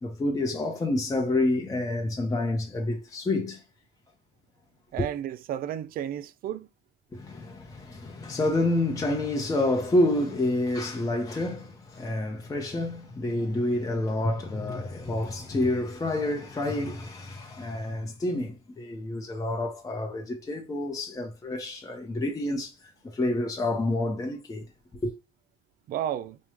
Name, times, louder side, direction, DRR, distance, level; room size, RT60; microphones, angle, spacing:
voice 1, 0.0-3.6 5.0-5.1 7.1-24.6 24.9-25.1, left 1 dB, 20° left, 0.7 m, -28 dB
voice 2, 4.9-6.7 25.9-26.4, right 10 dB, 60° right, 0.4 m, -32 dB
4.8 x 2.2 x 3.0 m
cardioid pair, 110°, 17 cm